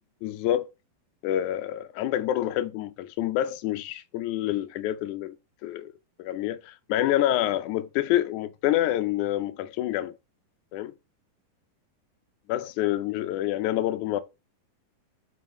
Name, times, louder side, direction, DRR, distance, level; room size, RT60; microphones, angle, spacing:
voice 1, 0.2-0.7 1.2-5.4 5.6-5.9 6.2-10.1 10.7-10.9 12.5-14.2, left 13 dB, 85° left, 1.7 m, -27 dB
6.2 x 4.8 x 5.2 m
omnidirectional pair, 4.2 m